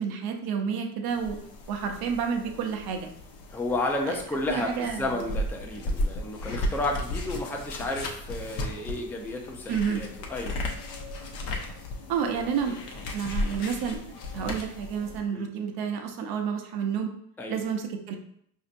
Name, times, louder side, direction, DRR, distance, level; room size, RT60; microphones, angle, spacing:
voice 1, 0.0-1.4 1.7-3.1 4.1-4.2 4.5-5.0 9.7-10.0 12.1-12.8 13.1-14.0 14.3-17.1 17.5-18.2, right 7 dB, 50° right, 4 dB, 0.8 m, -30 dB
sound 1, 1.1-15.2, left 1 dB, 55° left, 0.9 m, -35 dB
voice 2, 3.5-10.6 14.4-14.6 15.3-15.5 17.4-17.6, left 2 dB, 5° left, 1 dB, 0.6 m, -32 dB
4.9 x 2.7 x 2.6 m, 0.68 s
hypercardioid pair, 70°, 47 cm